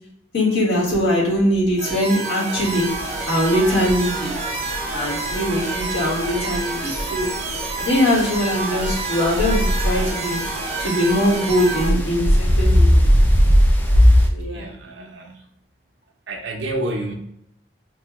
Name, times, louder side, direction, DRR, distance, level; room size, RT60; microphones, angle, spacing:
voice 1, 0.3-2.9 3.3-4.3 4.9-7.3 7.8-10.4 10.8-13.1 14.3-14.7, equal, 90° left, -5 dB, 1.5 m, -21 dB
sound 1, 1.8-11.9, right 3 dB, 40° right, 0.6 m, -28 dB
sound 2, 2.6-14.3, equal, 10° left, 0.3 m, -21 dB
voice 2, 14.4-15.4 16.3-17.1, right 1 dB, 90° right, 3 dB, 0.6 m, -29 dB
4.5 x 2.2 x 2.9 m, 0.78 s
head